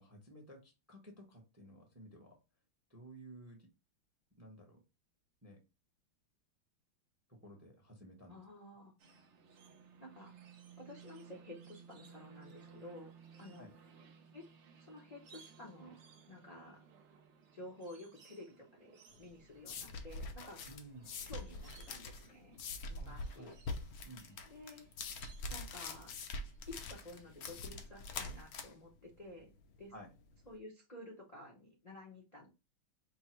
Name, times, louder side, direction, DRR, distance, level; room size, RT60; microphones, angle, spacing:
voice 1, 0.0-2.3 2.9-3.7 4.4-4.8 5.4-5.6 7.4-8.4 13.6-13.7 20.7-21.1 23.0-23.5 24.0-24.4 29.9-30.1, right 1 dB, 15° right, 2 dB, 0.5 m, -54 dB
voice 2, 8.3-8.9 10.0-10.3 10.8-13.1 13.4-13.7 14.3-14.5 14.8-16.0 16.3-16.8 17.5-20.6 21.2-22.6 22.9-23.5 24.4-24.9 25.5-26.1 26.7-29.5 29.8-29.9 30.5-32.5, left 1 dB, 50° left, -2 dB, 0.4 m, -52 dB
sound 1, 9.0-28.6, right 6 dB, 85° right, 0.6 m, -61 dB
sound 2, 19.1-30.5, left 3 dB, 70° left, 0.9 m, -45 dB
5.3 x 2.1 x 4.4 m, 0.27 s
omnidirectional pair, 2.2 m